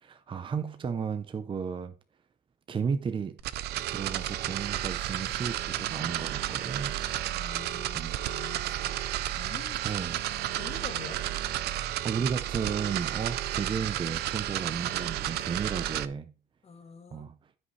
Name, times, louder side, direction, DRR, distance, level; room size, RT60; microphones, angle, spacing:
voice 1, 0.0-2.0 2.7-3.4 3.9-7.0 7.9-8.3 9.8-10.2 11.8-16.3 17.1-17.4, right 6 dB, 30° right, 0.7 m, -34 dB
sound 1, 3.4-16.1, right 13 dB, 75° right, 0.6 m, -32 dB
voice 2, 7.3-9.0 9.2-10.2 10.5-11.2 13.7-13.9 16.6-17.3, left 5 dB, 35° left, 1.2 m, -46 dB
12.5 x 5.4 x 3.2 m
cardioid pair, 110°, 17 cm